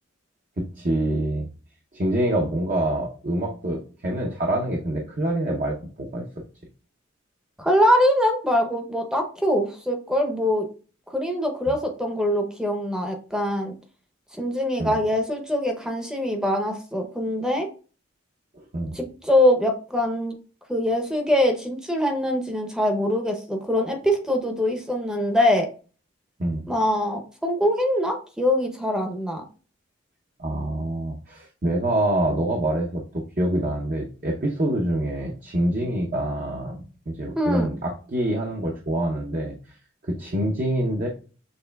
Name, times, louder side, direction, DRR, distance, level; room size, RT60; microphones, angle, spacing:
voice 1, 0.6-1.5 1.9-6.2 11.7-11.8 14.8-14.9 18.5-18.9 26.4-26.7 30.4-39.6 40.0-41.1, right 1 dB, 45° right, -1 dB, 0.7 m, -26 dB
voice 2, 7.6-10.7 11.1-13.7 14.4-17.7 18.9-20.4 20.7-25.7 26.7-29.4 37.4-37.7, left 1 dB, 5° right, 3 dB, 0.7 m, -23 dB
6.6 x 3.0 x 2.3 m, 0.37 s
head